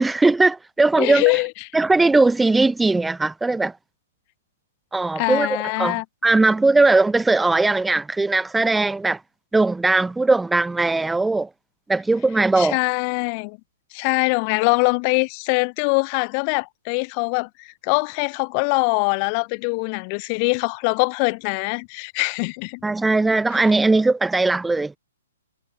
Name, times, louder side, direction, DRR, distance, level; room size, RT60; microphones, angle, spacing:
voice 1, 0.0-1.2 1.7-3.7 4.9-9.2 9.5-11.5 11.9-12.8 22.8-24.9, right 3 dB, 5° right, 0.4 m, -19 dB
voice 2, 1.0-1.5 5.1-6.0 12.6-13.6 13.9-22.8 23.5-23.6, left 39 dB, 35° left, 1.4 m, -23 dB
hypercardioid pair, 125°, 0 cm